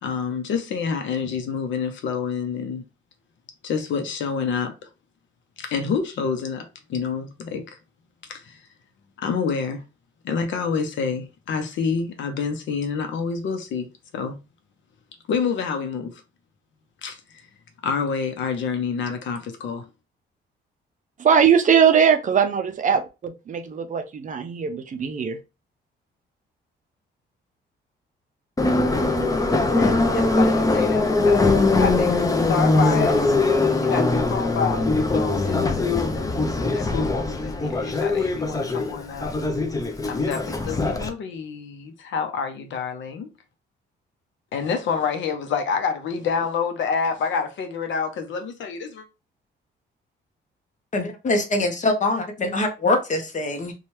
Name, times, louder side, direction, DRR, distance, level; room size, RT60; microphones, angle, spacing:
voice 1, 0.0-2.8 3.6-4.9 5.6-7.8 8.3-8.6 9.2-9.8 10.2-14.4 15.3-16.2 17.0-17.5 17.8-19.9 29.7-36.4 36.7-39.3 40.1-43.3 44.5-49.0, left 6 dB, 70° left, 0.7 m, -28 dB
voice 2, 21.2-25.4, right 7 dB, 40° right, 0.5 m, -20 dB
Subway metro underground, 28.6-41.1, left 3 dB, 15° left, 0.5 m, -21 dB
voice 3, 50.9-53.7, left 2 dB, 40° left, 0.8 m, -23 dB
2.8 x 2.3 x 3.1 m
cardioid pair, 90°, 20 cm